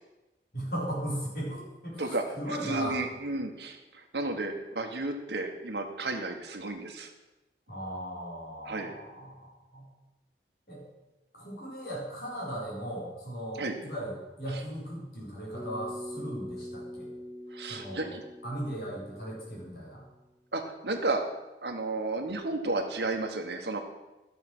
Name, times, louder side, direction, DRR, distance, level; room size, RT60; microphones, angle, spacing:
voice 1, 0.5-3.0 7.7-9.8 10.7-10.8 11.3-17.1 17.6-18.1 18.4-20.0, right 1 dB, 60° left, -5 dB, 4.3 m, -37 dB
voice 2, 2.0-7.1 8.7-8.9 13.6-13.7 17.5-18.2 20.5-21.2 21.6-23.8, right 2 dB, 75° right, 5 dB, 1.4 m, -33 dB
Bass guitar, 15.5-19.9, equal, 25° left, 4.3 m, -43 dB
11.5 x 6.9 x 6.1 m, 1.1 s
head